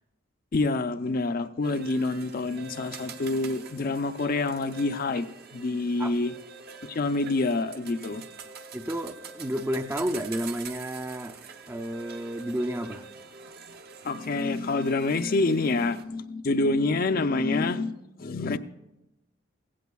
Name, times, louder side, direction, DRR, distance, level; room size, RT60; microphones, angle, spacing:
voice 1, 0.5-5.3 5.5-6.3 6.8-8.2 14.0-17.9 18.2-18.6, left 3 dB, 50° left, 10 dB, 0.5 m, -27 dB
sound 1, 1.6-16.0, right 5 dB, 50° right, 0.7 m, -45 dB
voice 2, 8.7-11.4 11.7-13.1, equal, 15° right, 6 dB, 0.4 m, -31 dB
16.0 x 16.0 x 2.3 m, 0.92 s
head